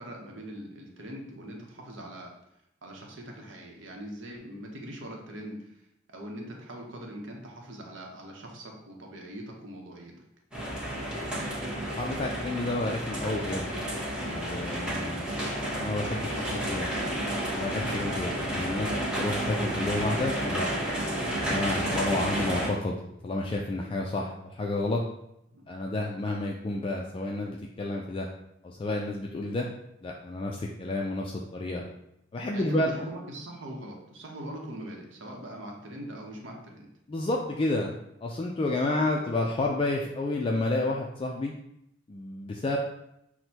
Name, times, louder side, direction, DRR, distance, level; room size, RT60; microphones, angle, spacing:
voice 1, 0.0-2.3 2.8-10.1 14.9-15.1 16.3-16.8 25.5-25.6 32.5-36.9 39.1-39.2, right 1 dB, 70° right, 0 dB, 0.8 m, -42 dB
sound 1, 10.5-22.7, right 1 dB, 5° right, 0.9 m, -31 dB
voice 2, 11.9-13.7 14.2-15.3 15.8-16.9 17.5-20.7 21.4-23.0 23.2-25.0 25.7-28.3 28.6-29.7 30.0-31.8 32.3-33.1 37.1-41.5 42.1-42.8, left 2 dB, 30° left, -1 dB, 0.3 m, -30 dB
6.1 x 2.1 x 2.8 m, 0.81 s
head